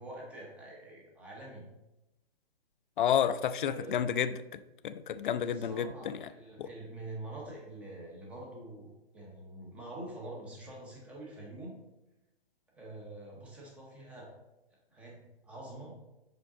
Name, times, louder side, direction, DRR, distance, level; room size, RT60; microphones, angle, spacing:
voice 1, 0.0-1.7 3.7-4.0 5.4-11.8 12.7-14.3 14.9-16.0, right 2 dB, 5° right, -3 dB, 0.6 m, -46 dB
voice 2, 3.0-4.4 4.8-6.1 6.6-6.7, left 9 dB, 55° left, 13 dB, 0.4 m, -30 dB
5.8 x 5.2 x 3.7 m, 0.97 s
hypercardioid pair, 155°, 32 cm